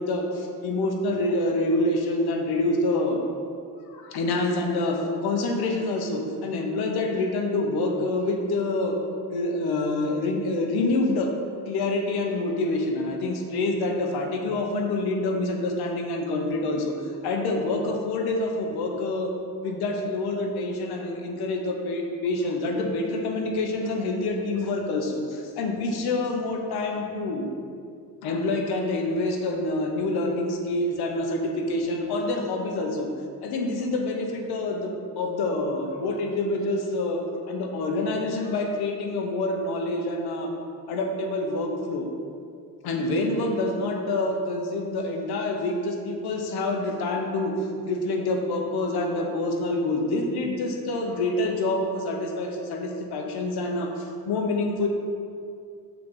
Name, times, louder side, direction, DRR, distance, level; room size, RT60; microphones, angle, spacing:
voice 1, 0.0-3.2 3.8-8.9 9.3-11.3 11.7-16.9 17.2-19.3 19.6-27.5 28.2-33.1 33.4-37.2 37.5-40.5 40.9-42.1 42.8-54.9, left 2 dB, 80° left, 2 dB, 1.1 m, -27 dB
6.6 x 4.0 x 5.4 m, 2.3 s
supercardioid pair, 75°, 38 cm